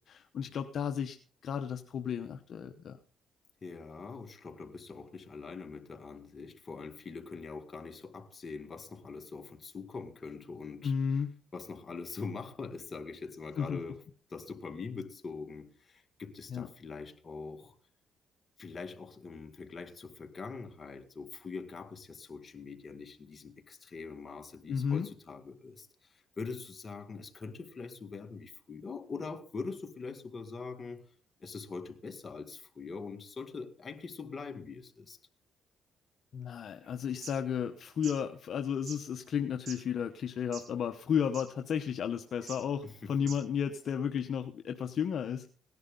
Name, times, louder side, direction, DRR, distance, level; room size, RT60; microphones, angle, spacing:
voice 1, 0.1-1.2 1.4-3.0 10.8-11.3 13.6-13.8 16.5-16.7 24.7-25.1 36.3-45.5, left 7 dB, 60° left, 0.9 m, -33 dB
voice 2, 3.6-10.9 11.5-14.0 14.3-17.8 18.6-31.0 31.4-35.2 42.8-43.2, left 4 dB, 35° left, 2.1 m, -43 dB
sound 1, 37.0-37.3 37.9-38.2 38.9-39.0 39.7-39.8 40.4-40.8 41.0-41.1 41.3-41.5 42.4-42.6 43.2-43.5, right 6 dB, 70° right, 4.2 m, -45 dB
18.0 x 11.0 x 3.9 m
cardioid pair, 90°, 0 cm